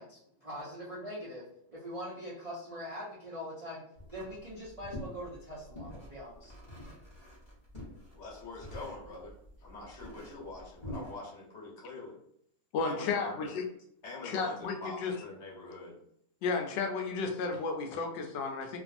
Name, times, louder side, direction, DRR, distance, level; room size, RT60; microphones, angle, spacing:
voice 1, 0.0-1.4 1.7-6.5, equal, 60° right, -8 dB, 0.3 m, -42 dB
sound 1, 4.0-11.1, equal, 30° left, 0.8 m, -47 dB
voice 2, 8.1-12.2 12.8-13.5 14.0-16.0, left 2 dB, 50° left, -4 dB, 1.0 m, -44 dB
voice 3, 12.7-13.6 14.2-15.1 16.4-18.8, left 4 dB, 80° left, 4 dB, 1.2 m, -33 dB
3.0 x 2.5 x 2.5 m, 0.70 s
omnidirectional pair, 1.9 m